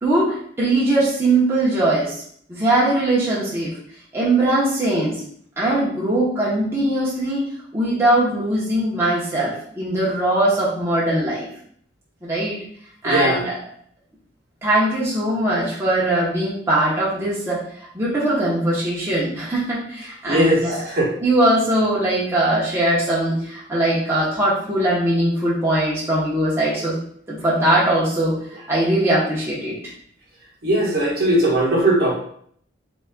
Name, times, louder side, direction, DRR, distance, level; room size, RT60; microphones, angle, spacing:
voice 1, 0.0-2.1 2.5-3.7 4.1-5.2 5.6-11.5 12.2-12.6 13.0-13.6 14.6-17.6 17.9-20.8 21.2-26.9 27.3-28.3 28.7-29.9, right 1 dB, 15° right, -8 dB, 0.9 m, -20 dB
voice 2, 13.0-13.4 20.3-21.1 30.6-32.1, right 1 dB, 55° right, -4 dB, 1.1 m, -19 dB
4.0 x 3.5 x 2.2 m, 0.63 s
head